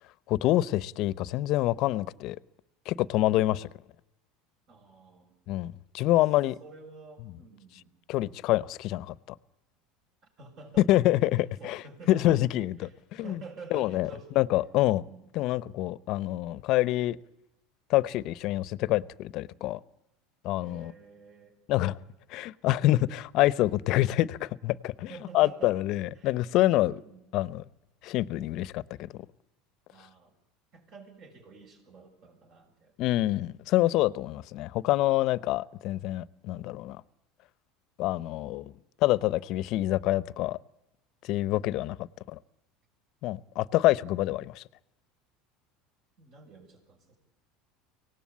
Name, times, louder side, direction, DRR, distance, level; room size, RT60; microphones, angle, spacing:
voice 1, 0.3-2.4 2.9-3.7 5.5-6.6 8.1-9.1 10.9-11.8 12.1-13.4 13.7-14.1 14.4-15.0 15.3-17.2 17.9-19.8 20.4-20.9 21.7-22.0 22.3-25.1 25.3-27.0 27.3-27.6 28.0-29.1 33.0-37.0 38.0-38.7 39.0-40.6 41.2-42.4 43.2-44.6, left 16 dB, 60° left, 20 dB, 0.7 m, -26 dB
voice 2, 4.7-5.4 6.6-8.0 10.4-11.0 11.4-12.4 12.8-14.5 14.9-15.3 20.6-21.6 25.1-25.8 26.1-26.3 26.9-27.3 29.9-30.3 30.7-32.9 46.2-47.2, right 4 dB, 50° right, 4 dB, 6.7 m, -49 dB
24.0 x 18.0 x 8.5 m, 0.91 s
hypercardioid pair, 95°, 0 cm